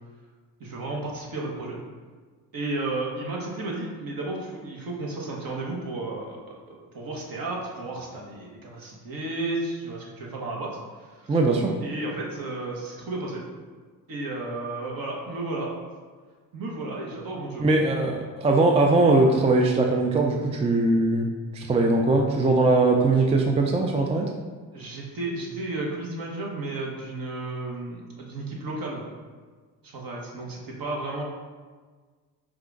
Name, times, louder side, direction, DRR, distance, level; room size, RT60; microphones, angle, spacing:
voice 1, 0.6-1.8 2.5-11.4 11.8-13.4 14.1-15.7 16.5-17.6 24.7-29.1 29.8-31.2, right 2 dB, 55° right, -2 dB, 1.2 m, -33 dB
voice 2, 11.3-11.7 17.6-21.3 21.5-24.3, right 2 dB, 15° right, 2 dB, 0.4 m, -21 dB
4.8 x 2.4 x 3.8 m, 1.5 s
supercardioid pair, 70°, 42 cm